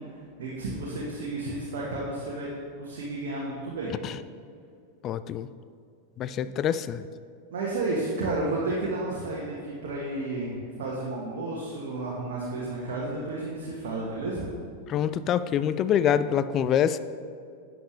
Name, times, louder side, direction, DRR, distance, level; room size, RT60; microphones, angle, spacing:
voice 1, 0.4-2.5 2.8-3.9 7.5-14.5, right 2 dB, 55° right, -4 dB, 1.5 m, -32 dB
voice 2, 5.0-5.5 6.2-7.1 14.9-17.0, left 9 dB, 30° left, 13 dB, 0.3 m, -25 dB
11.0 x 7.8 x 3.3 m, 2.3 s
figure-of-eight pair, 90°, 0 cm